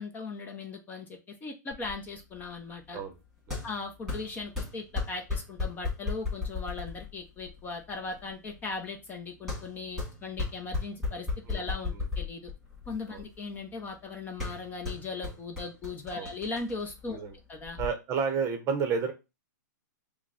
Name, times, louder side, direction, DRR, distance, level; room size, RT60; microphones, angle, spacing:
voice 1, 0.0-3.0 3.6-12.5 12.9-17.2 17.5-17.8, left 3 dB, 15° left, 3 dB, 0.7 m, -38 dB
sound 1, 1.7-17.9, left 4 dB, ahead, 2.2 m, -37 dB
voice 2, 17.8-19.1, right 5 dB, 25° right, 7 dB, 0.9 m, -31 dB
5.8 x 2.2 x 4.0 m, 0.26 s
hypercardioid pair, 140°, 10 cm